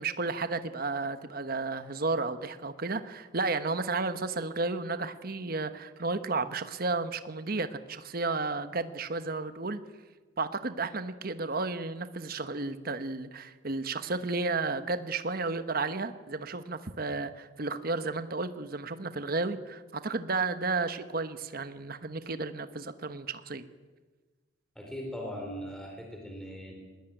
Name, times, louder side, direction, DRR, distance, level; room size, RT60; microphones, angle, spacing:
voice 1, 0.0-9.8 10.4-23.6, right 3 dB, 50° right, 10 dB, 1.2 m, -32 dB
voice 2, 24.7-26.7, equal, 5° left, 1 dB, 4.4 m, -39 dB
20.5 x 20.5 x 9.2 m, 1.3 s
head